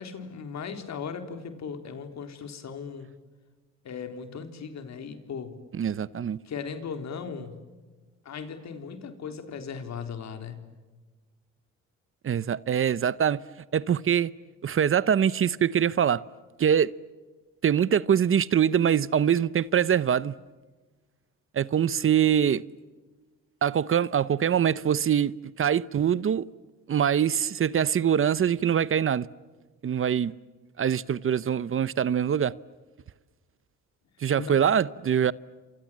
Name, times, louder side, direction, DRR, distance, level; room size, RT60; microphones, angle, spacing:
voice 1, 0.0-3.1 3.8-5.6 6.5-7.6 8.3-10.6 34.4-34.5, left 6 dB, 65° left, 3.9 m, -37 dB
voice 2, 5.7-6.4 12.2-13.4 13.7-14.3 14.6-16.2 16.6-16.9 17.6-20.3 21.5-22.6 23.6-25.3 25.6-26.5 26.9-29.3 29.8-30.3 30.8-32.5 34.2-35.3, right 8 dB, 45° right, 0.8 m, -23 dB
30.0 x 27.0 x 7.5 m
cardioid pair, 90°, 30 cm